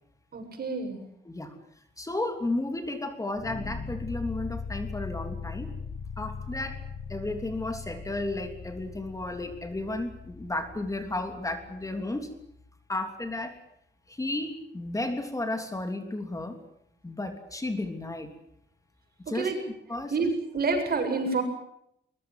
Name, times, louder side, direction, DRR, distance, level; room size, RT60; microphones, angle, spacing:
voice 1, 0.3-1.0 19.3-19.6 20.1-20.3 20.5-21.4, right 4 dB, 55° right, 5 dB, 7.6 m, -28 dB
voice 2, 1.2-1.5 2.0-5.7 6.2-6.8 7.1-12.3 12.9-13.6 14.1-16.6 17.0-18.3 19.3-19.5 19.9-20.1, left 2 dB, 15° left, 6 dB, 3.2 m, -33 dB
sound 1, 3.3-12.5, left 4 dB, 45° left, 4.8 m, -40 dB
23.0 x 22.0 x 7.8 m, 0.74 s
wide cardioid pair, 125°, 19 cm